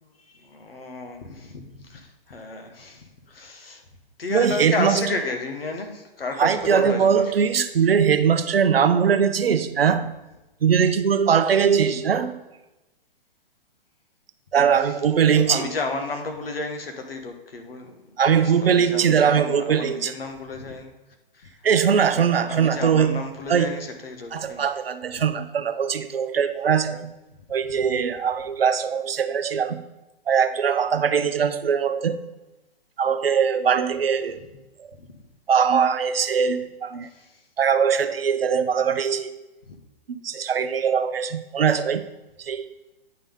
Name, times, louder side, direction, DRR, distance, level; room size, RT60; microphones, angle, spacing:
voice 1, 0.0-3.8 4.2-7.3 14.8-15.0 15.4-17.9 18.4-20.9 21.3-21.5 22.3-24.6 27.6-28.0 35.0-35.1 37.0-37.4 39.7-39.8, left 3 dB, 75° left, 4 dB, 1.4 m, -33 dB
voice 2, 4.3-5.0 6.4-10.1 10.6-12.4 14.5-15.7 18.2-20.1 21.6-23.2 23.5-23.7 24.3-27.1 27.5-29.8 30.3-32.2 33.0-34.4 34.8-34.9 35.5-37.1 37.6-39.4 40.1-42.1 42.4-42.7, right 7 dB, 80° right, 11 dB, 0.6 m, -21 dB
9.5 x 4.0 x 5.2 m, 1.0 s
figure-of-eight pair, 120°, 29 cm